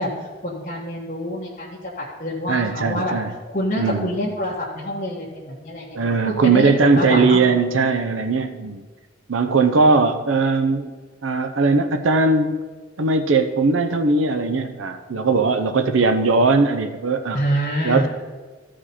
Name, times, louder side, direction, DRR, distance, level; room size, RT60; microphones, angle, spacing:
voice 1, 0.0-3.2 3.5-7.4 9.9-10.0 17.3-18.1, equal, 40° left, -6 dB, 1.4 m, -26 dB
voice 2, 2.5-3.3 3.8-4.1 5.9-8.8 9.3-10.9 11.2-12.6 13.0-17.4 17.8-18.1, right 3 dB, 85° right, 8 dB, 0.6 m, -19 dB
14.0 x 5.1 x 4.2 m, 1.4 s
head